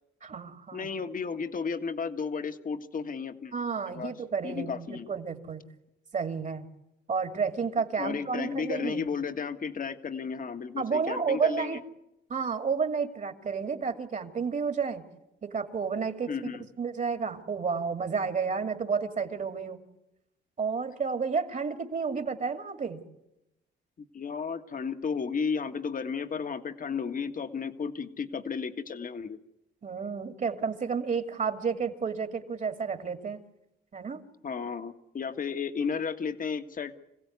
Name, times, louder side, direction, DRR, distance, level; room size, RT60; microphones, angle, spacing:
voice 1, 0.2-0.9 3.5-5.6 6.1-6.6 7.1-9.1 10.8-11.8 12.3-15.0 15.4-16.3 16.8-19.8 20.6-23.0 29.8-33.4 33.9-34.2, right 5 dB, 40° right, 8 dB, 2.6 m, -31 dB
voice 2, 0.7-3.5 3.9-4.1 4.4-5.1 8.0-11.8 16.3-16.7 24.1-29.4 34.4-36.9, left 5 dB, 45° left, 8 dB, 1.7 m, -33 dB
26.5 x 16.0 x 9.6 m, 0.88 s
cardioid pair, 90°, 20 cm